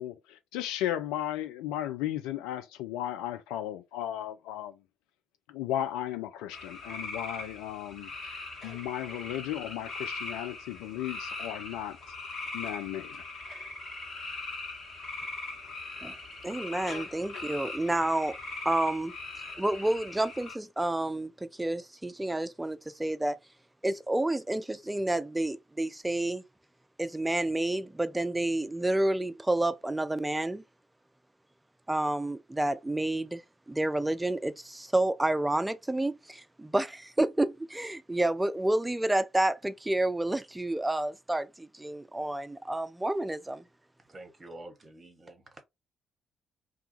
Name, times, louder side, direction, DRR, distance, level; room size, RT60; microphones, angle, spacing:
voice 1, 0.0-4.8 5.5-12.0 12.5-13.2, left 12 dB, 65° left, 0.3 m, -35 dB
sound 1, 6.5-20.5, left 3 dB, 50° left, 1.2 m, -40 dB
voice 2, 16.4-18.4 18.7-19.1 19.6-23.4 23.8-26.4 27.0-30.6 31.9-33.4 33.7-43.6, right 1 dB, 10° right, 0.3 m, -29 dB
voice 3, 44.1-45.6, right 2 dB, 30° right, 0.9 m, -48 dB
2.3 x 2.2 x 2.9 m
figure-of-eight pair, 40°, 0 cm